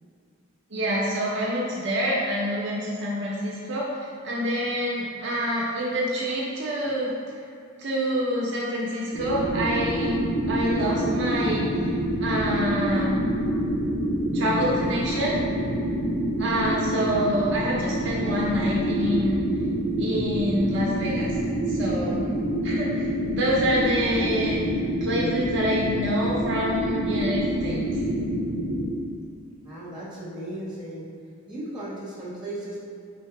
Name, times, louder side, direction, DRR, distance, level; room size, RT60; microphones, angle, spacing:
voice 1, 0.7-7.1 7.8-10.1 10.5-13.2 14.3-15.4 16.4-19.4 20.0-21.3 21.7-22.2 22.6-24.6 25.0-28.0, equal, 55° right, -4 dB, 0.6 m, -26 dB
sound 1, 9.1-28.9, right 1 dB, 65° left, 1.1 m, -27 dB
voice 2, 29.6-31.0 31.5-32.8, right 1 dB, 5° right, -10 dB, 1.4 m, -36 dB
4.0 x 2.7 x 4.6 m, 2.5 s
head